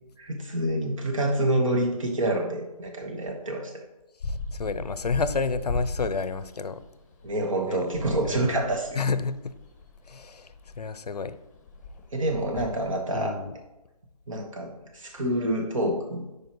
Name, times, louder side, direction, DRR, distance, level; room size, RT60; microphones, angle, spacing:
voice 1, 0.2-3.7 7.2-9.0 12.1-13.4 14.3-16.2, right 1 dB, 55° right, 3 dB, 1.5 m, -27 dB
voice 2, 4.2-6.8 7.7-7.9 8.3-8.5 9.0-9.5 10.1-11.4 12.5-12.7 13.1-13.5, left 4 dB, 80° left, 14 dB, 0.6 m, -30 dB
sound 1, 4.2-12.9, left 2 dB, 30° left, 0.8 m, -37 dB
9.5 x 5.0 x 3.1 m, 1.0 s
figure-of-eight pair, 160°, 20 cm